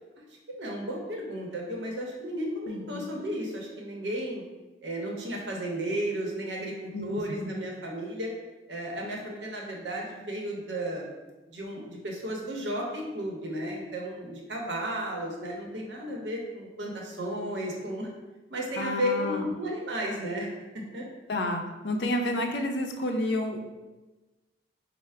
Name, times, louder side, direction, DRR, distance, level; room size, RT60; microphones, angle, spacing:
voice 1, 0.0-4.4 4.8-8.3 8.7-11.1 11.5-18.1 18.5-21.1, right 1 dB, 85° right, -1 dB, 0.8 m, -34 dB
voice 2, 2.7-3.0 6.9-7.1 18.8-19.5 21.3-23.6, left 1 dB, 70° left, 4 dB, 0.4 m, -30 dB
4.5 x 2.0 x 3.3 m, 1.2 s
head